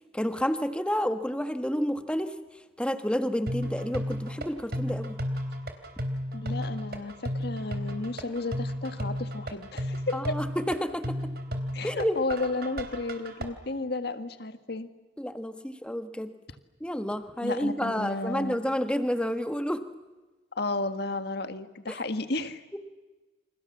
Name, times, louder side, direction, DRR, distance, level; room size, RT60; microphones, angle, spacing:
voice 1, 0.1-2.3 2.8-5.2 10.1-11.2 11.8-12.1 15.2-16.3 16.8-19.8 21.9-22.0 22.7-22.8, equal, 5° left, 8 dB, 1.5 m, -30 dB
sound 1, 3.5-13.5, equal, 55° right, 3.6 m, -33 dB
voice 2, 6.3-10.4 11.7-14.9 17.4-18.6 20.5-22.6, left 2 dB, 55° left, 9 dB, 1.7 m, -33 dB
29.0 x 27.5 x 7.3 m, 1.2 s
head